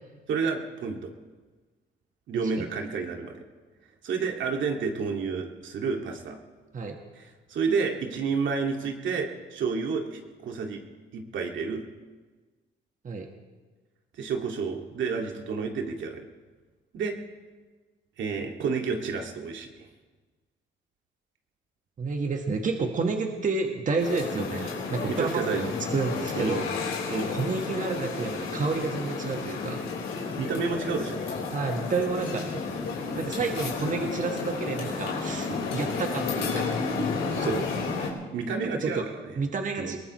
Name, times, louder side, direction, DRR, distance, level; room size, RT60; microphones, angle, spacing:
voice 1, 0.3-1.1 2.3-3.3 4.0-6.4 7.1-10.8 11.1-11.9 14.2-16.3 16.9-17.1 18.2-19.9 24.3-24.5 25.1-25.7 26.4-26.5 27.1-27.3 30.4-31.2 35.5-35.6 37.3-37.7 38.0-39.3 39.8-39.9, right 5 dB, 70° right, 2 dB, 2.2 m, -30 dB
voice 2, 22.0-26.6 27.1-29.9 31.5-32.6 33.1-36.8 38.6-39.0 39.4-40.0, right 4 dB, 40° right, 3 dB, 1.5 m, -30 dB
sound 1, 24.0-38.1, left 4 dB, 80° left, 3.9 m, -32 dB
22.0 x 19.0 x 3.2 m, 1.3 s
cardioid pair, 90°, 20 cm